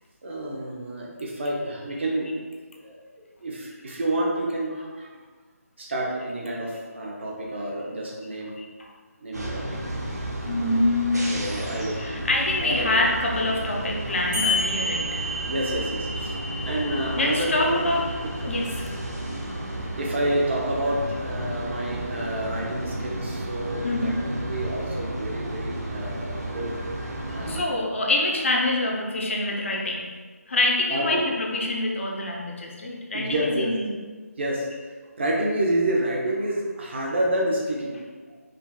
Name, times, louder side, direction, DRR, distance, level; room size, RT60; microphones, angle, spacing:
voice 1, 0.2-2.3 2.8-5.1 5.8-8.5 9.2-9.8 10.1-10.3 11.3-12.0 12.6-13.0 15.4-16.4 16.6-17.9 18.2-18.5 20.0-24.1 24.5-26.7 27.3-27.9 30.9-31.3 33.1-33.7 34.4-34.7 35.2-38.0, right 1 dB, 45° right, -2 dB, 1.0 m, -29 dB
voice 2, 8.6-8.9 10.4-11.3 11.9-15.2 17.1-18.1 18.5-18.9 23.8-24.2 27.3-30.1 30.5-33.9, left 2 dB, 50° left, -1 dB, 0.8 m, -26 dB
sound 1, 9.3-27.6, right 1 dB, 85° right, 1.0 m, -32 dB
sound 2, 14.3-19.3, left 1 dB, 10° right, 0.4 m, -32 dB
5.1 x 3.9 x 2.3 m, 1.4 s
figure-of-eight pair, 165°, 9 cm